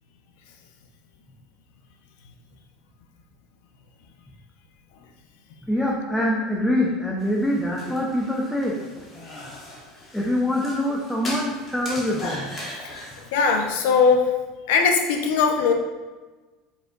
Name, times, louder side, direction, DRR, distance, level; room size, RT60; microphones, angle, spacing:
voice 1, 5.7-8.8 10.1-12.5, left 1 dB, 5° left, -3 dB, 0.7 m, -24 dB
sound 1, 7.2-13.4, left 1 dB, 25° left, 1.5 m, -38 dB
voice 2, 13.3-14.3 14.7-15.7, left 5 dB, 80° left, 4 dB, 0.8 m, -19 dB
7.2 x 5.2 x 2.5 m, 1.3 s
supercardioid pair, 145°, 0 cm